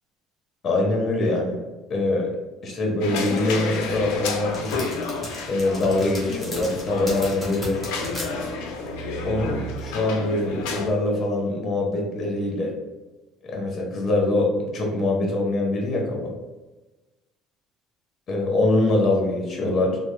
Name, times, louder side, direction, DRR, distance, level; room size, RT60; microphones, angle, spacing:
voice 1, 0.6-1.6 1.9-2.4 2.6-4.7 5.5-7.8 9.2-12.7 13.4-16.3 18.3-20.0, left 2 dB, 35° left, 0 dB, 0.7 m, -23 dB
sound 1, 3.0-10.9, left 3 dB, 85° left, 0.4 m, -30 dB
sound 2, 3.3-8.3, equal, 5° left, 1.1 m, -36 dB
3.1 x 2.0 x 3.1 m, 1.1 s
cardioid pair, 130°, 0 cm